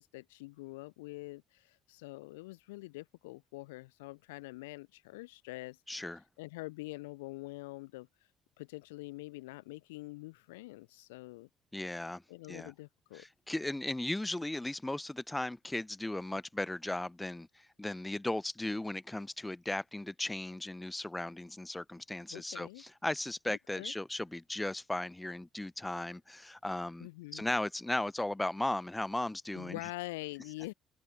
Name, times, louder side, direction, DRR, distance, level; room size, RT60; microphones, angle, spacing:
voice 1, 0.0-8.1 8.6-11.5 12.3-13.3 22.3-22.8 23.5-23.9 27.0-27.5 29.5-30.7, left 22 dB, 75° left, 0.3 m, -45 dB
voice 2, 5.9-6.2 11.7-12.2 12.5-12.7 13.1-29.8, left 1 dB, 10° left, 0.9 m, -36 dB
open air
figure-of-eight pair, 45°, 0 cm